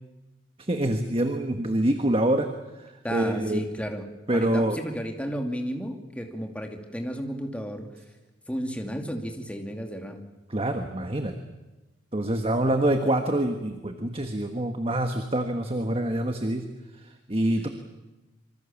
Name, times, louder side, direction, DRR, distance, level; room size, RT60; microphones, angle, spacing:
voice 1, 0.6-2.5 2.8-3.6 4.3-4.8 10.5-11.3 12.1-16.7 17.3-17.7, right 1 dB, 30° right, 6 dB, 1.5 m, -26 dB
voice 2, 3.0-4.0 4.3-7.9 8.5-10.2, equal, 5° left, 3 dB, 2.5 m, -32 dB
26.5 x 25.0 x 7.3 m, 1.1 s
head